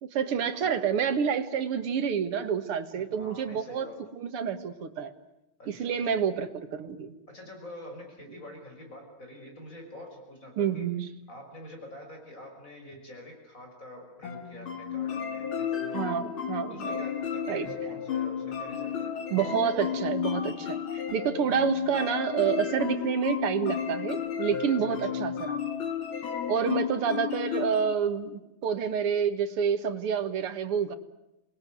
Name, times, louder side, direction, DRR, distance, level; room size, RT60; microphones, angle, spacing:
voice 1, 0.0-3.9 4.2-5.1 5.7-7.2 10.6-11.1 15.9-17.1 17.5-17.7 19.3-25.6 26.5-31.0, right 7 dB, 85° right, 10 dB, 2.4 m, -28 dB
voice 2, 2.9-4.0 5.6-6.2 7.3-10.9 11.3-16.1 16.7-19.1 24.8-25.2, left 1 dB, 35° left, 2 dB, 6.4 m, -46 dB
sound 1, 14.2-27.9, left 8 dB, 70° left, 2.8 m, -33 dB
27.5 x 20.5 x 9.4 m, 0.97 s
omnidirectional pair, 2.4 m